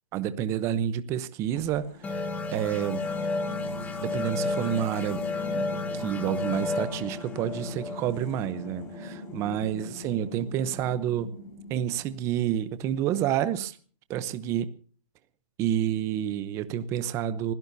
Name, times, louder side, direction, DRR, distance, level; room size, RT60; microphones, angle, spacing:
voice 1, 0.1-2.3 2.5-3.0 4.0-5.3 5.5-11.3 11.7-13.8 14.1-14.7 15.6-17.5, right 10 dB, 15° right, 0.8 m, -29 dB
sound 1, 1.6-12.6, left 2 dB, 35° left, 5.4 m, -43 dB
sound 2, 2.0-9.3, left 3 dB, 10° left, 1.5 m, -32 dB
26.0 x 16.5 x 2.7 m
hypercardioid pair, 165°, 17 cm